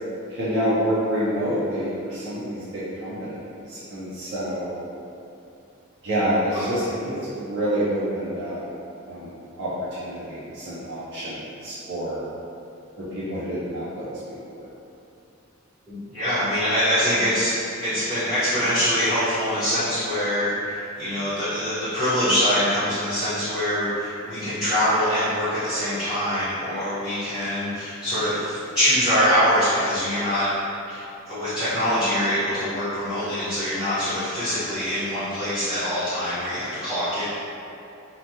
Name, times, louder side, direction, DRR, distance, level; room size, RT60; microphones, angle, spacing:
voice 1, 0.3-3.3 3.7-4.8 6.0-8.6 9.1-9.3 9.6-9.7 10.0-12.3 13.1-14.1, equal, 60° right, -12 dB, 0.6 m, -27 dB
voice 2, 15.9-30.5 30.9-37.2, equal, ahead, -17 dB, 1.0 m, -24 dB
3.1 x 2.2 x 2.7 m, 2.7 s
head